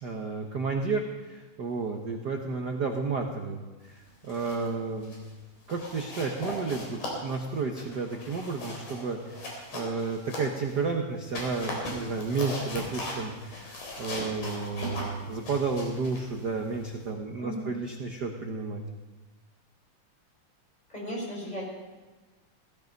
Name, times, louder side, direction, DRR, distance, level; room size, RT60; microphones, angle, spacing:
voice 1, 0.0-1.0 1.3-3.6 3.8-5.2 5.7-18.8, right 4 dB, 80° right, 2 dB, 0.9 m, -32 dB
sound 1, 4.1-4.7 5.0-5.3 5.7-10.8 11.2-17.1, left 1 dB, 85° left, 5.3 m, -39 dB
voice 2, 17.4-17.7 20.9-21.7, equal, 10° left, -3 dB, 5.3 m, -35 dB
16.5 x 15.0 x 5.3 m, 1.2 s
omnidirectional pair, 3.6 m